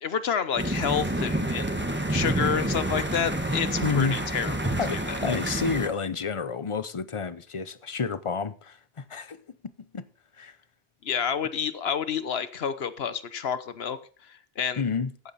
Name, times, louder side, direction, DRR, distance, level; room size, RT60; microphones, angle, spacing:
voice 1, 0.0-1.8 2.1-5.2 11.0-14.8, left 7 dB, 65° left, 1.2 m, -29 dB
sound 1, 0.6-5.9, right 1 dB, 10° right, 1.3 m, -28 dB
voice 2, 3.8-4.2 4.8-8.8 9.1-9.4 9.8-10.0 10.4-10.6 14.8-15.1, left 5 dB, 30° left, 0.7 m, -29 dB
15.0 x 8.9 x 4.2 m
omnidirectional pair, 1.1 m